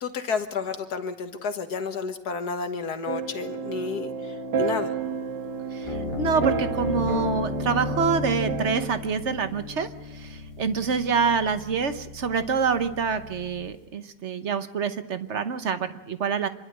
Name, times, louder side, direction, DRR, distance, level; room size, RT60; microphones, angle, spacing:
voice 1, 0.0-4.9, left 5 dB, 65° left, 8 dB, 1.9 m, -31 dB
sound 1, 3.1-8.9, right 5 dB, 80° right, 2.0 m, -31 dB
voice 2, 5.7-16.5, right 5 dB, 45° right, 10 dB, 1.1 m, -26 dB
sound 2, 5.8-13.7, left 3 dB, 30° left, 1.7 m, -34 dB
26.5 x 11.5 x 8.8 m, 0.98 s
omnidirectional pair, 1.8 m